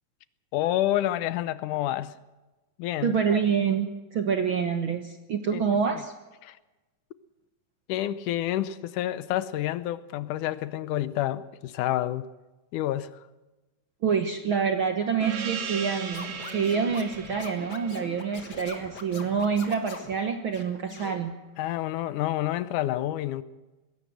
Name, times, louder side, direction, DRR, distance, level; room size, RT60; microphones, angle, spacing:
voice 1, 0.5-2.1 2.8-3.2 5.5-5.6 5.9-6.0 6.4-6.6 7.9-12.3 12.7-13.1 21.6-23.4, left 13 dB, 75° left, 2.2 m, -28 dB
voice 2, 3.0-6.1 14.0-21.3, right 6 dB, 60° right, 1.3 m, -27 dB
Gong, 15.2-20.2, right 6 dB, 80° right, 3.7 m, -38 dB
Scratching (performance technique), 16.1-20.1 20.5-21.2, left 4 dB, 35° left, 2.0 m, -42 dB
20.0 x 16.5 x 7.8 m
omnidirectional pair, 3.7 m